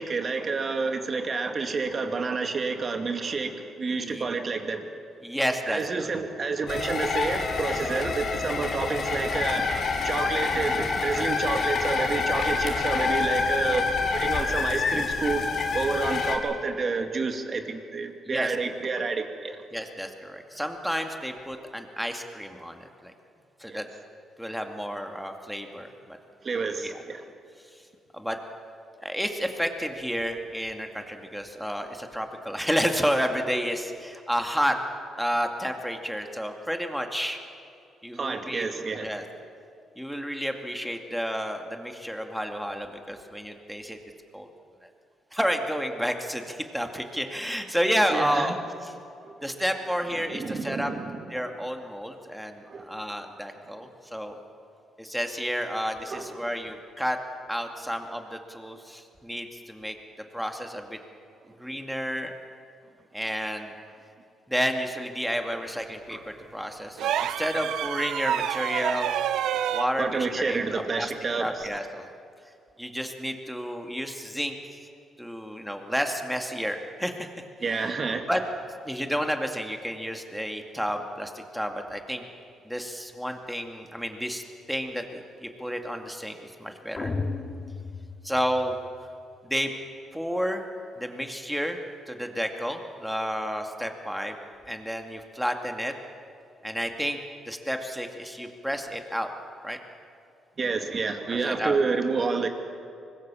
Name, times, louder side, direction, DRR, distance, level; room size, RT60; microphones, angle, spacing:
voice 1, 0.0-4.9 5.7-9.8 10.0-13.9 14.1-15.4 15.7-19.6 23.7-23.8 26.4-27.3 38.1-39.1 48.1-48.6 49.2-49.4 50.2-51.3 52.7-52.9 56.1-56.3 66.1-66.2 70.0-71.7 77.6-78.3 100.6-102.5, right 4 dB, 40° right, 5 dB, 2.3 m, -29 dB
voice 2, 5.2-6.1 18.3-18.5 19.7-23.1 23.6-23.9 24.4-26.2 26.8-26.9 28.1-28.4 29.0-34.8 35.2-37.4 38.0-38.6 39.0-39.2 40.0-44.0 44.3-44.5 45.3-48.5 48.8-48.9 49.4-50.9 51.3-54.4 55.0-57.2 57.5-60.0 60.3-61.0 61.6-62.3 63.1-63.7 64.5-69.2 69.7-71.1 71.4-72.1 72.8-74.6 75.2-77.3 77.7-77.8 78.3-78.4 78.9-82.2 82.7-84.4 84.7-87.1 88.2-88.8 89.4-89.7 90.1-90.7 91.0-91.8 92.1-94.3 94.7-95.9 96.6-97.2 97.5-99.3 99.6-99.8 101.3-101.8, equal, ahead, 4 dB, 2.3 m, -30 dB
sound 1, 6.7-16.4, left 4 dB, 55° left, 3.1 m, -27 dB
sound 2, 67.0-69.9 71.6-71.8, right 10 dB, 80° right, 0.6 m, -28 dB
sound 3, 87.0-89.1, left 3 dB, 35° left, 2.2 m, -34 dB
24.5 x 21.0 x 7.1 m, 2.5 s
cardioid pair, 90°, 0 cm